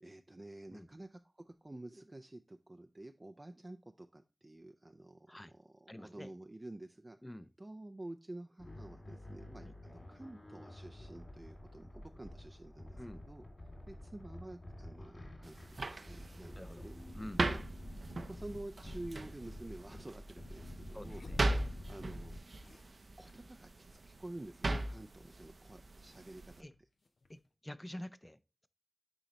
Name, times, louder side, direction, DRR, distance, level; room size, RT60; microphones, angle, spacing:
voice 1, 0.0-7.2 7.6-13.4 13.9-17.0 17.4-17.6 17.9-21.2 21.5-22.3 23.2-26.7, right 1 dB, 35° right, 0.4 m, -50 dB
voice 2, 5.9-6.3 7.2-7.5 9.6-9.7 13.0-13.2 16.6-16.8 17.1-17.4 20.9-21.4 26.6-26.7 27.3-28.7, left 1 dB, 15° left, 0.5 m, -48 dB
sound 1, 8.6-22.4, left 1 dB, 50° left, 2.7 m, -49 dB
sound 2, 15.4-26.6, right 2 dB, 70° right, 0.6 m, -40 dB
sound 3, 19.5-19.6 21.0-22.3 22.6-23.5 23.8-23.9 24.1-25.4 26.7-27.5, left 2 dB, 80° left, 0.7 m, -55 dB
9.9 x 4.0 x 3.0 m
wide cardioid pair, 65°, 0 cm